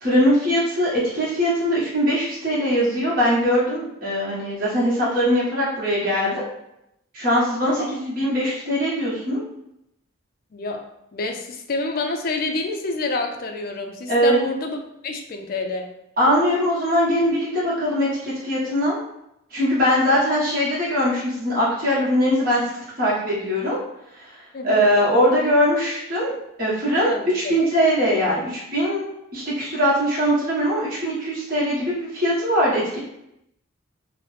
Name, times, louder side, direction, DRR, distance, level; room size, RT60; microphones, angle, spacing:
voice 1, 0.0-6.4 7.1-9.4 14.1-14.4 16.2-19.0 19.5-22.6 23.0-23.8 24.2-24.3 24.6-26.3 26.6-29.0 29.3-33.0, equal, 45° right, -8 dB, 1.1 m, -21 dB
voice 2, 11.1-14.8 15.0-15.9 20.0-20.2 24.5-24.9 27.0-27.7, left 3 dB, 45° left, 4 dB, 0.4 m, -28 dB
3.0 x 2.0 x 3.2 m, 0.82 s
head